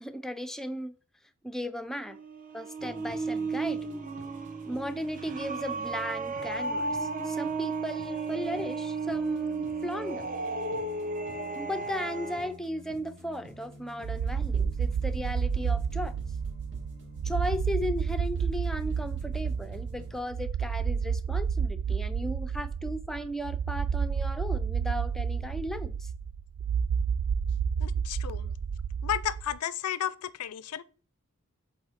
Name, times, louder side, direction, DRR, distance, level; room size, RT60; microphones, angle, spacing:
voice 1, 0.0-0.9 1.4-2.2 2.5-3.9 4.7-10.3 11.5-16.1 17.2-26.1, equal, ahead, 0.4 m, -36 dB
sound 1, 2.0-12.5, right 4 dB, 35° right, 0.8 m, -34 dB
sound 2, 2.8-20.2, equal, 55° right, 1.8 m, -49 dB
sound 3, 14.0-29.6, right 6 dB, 80° right, 0.3 m, -30 dB
voice 2, 27.8-28.5 29.0-30.8, left 10 dB, 90° left, 0.4 m, -33 dB
7.9 x 3.5 x 4.1 m
head